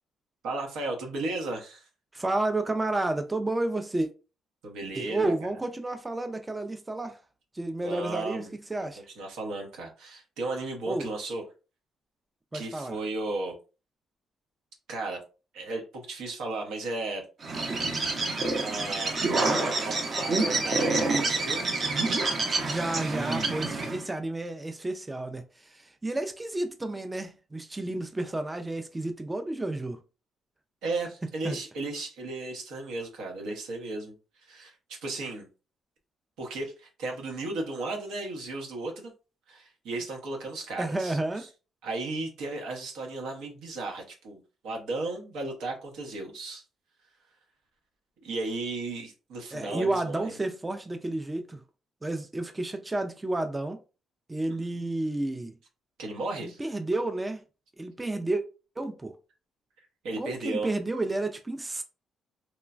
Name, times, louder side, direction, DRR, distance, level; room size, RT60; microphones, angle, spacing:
voice 1, 0.4-1.9 4.6-5.3 7.8-8.5 8.8-8.9 9.2-11.4 12.5-13.6 14.9-15.2 15.5-17.2 18.6-21.6 30.8-34.1 34.4-35.5 36.4-39.1 39.5-41.2 41.8-46.6 48.2-50.3 56.0-56.6 60.0-60.7, right 2 dB, 85° right, 0.8 m, -35 dB
voice 2, 2.1-4.1 4.9-7.2 7.5-9.0 10.9-11.1 12.5-13.0 22.6-30.0 31.4-31.6 40.8-41.5 49.5-51.6 52.0-53.8 54.3-55.5 56.4-57.4 57.8-58.4 58.8-59.1 60.2-61.8, right 2 dB, 15° right, 0.3 m, -31 dB
Bird, 17.4-24.0, right 3 dB, 45° right, 0.7 m, -27 dB
3.0 x 2.1 x 2.4 m
cardioid pair, 90°, 0 cm